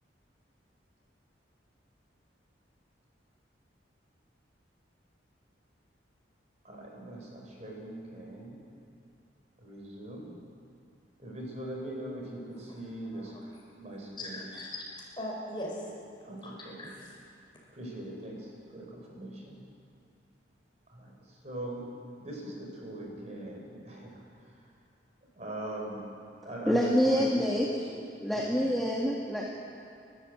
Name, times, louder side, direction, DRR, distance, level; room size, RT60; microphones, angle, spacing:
voice 1, 6.6-8.7 9.6-10.4 11.2-14.4 16.2-16.8 17.7-19.6 20.9-21.1 21.4-21.8 22.2-24.2 25.3-26.1 26.4-27.5 28.3-28.6, right 1 dB, 35° right, -1 dB, 4.6 m, -41 dB
voice 2, 14.2-14.8 15.2-15.8 16.4-17.1, left 1 dB, 25° left, -3 dB, 5.4 m, -39 dB
voice 3, 26.7-29.5, equal, ahead, -3 dB, 1.7 m, -27 dB
29.5 x 13.0 x 8.0 m, 2.4 s
head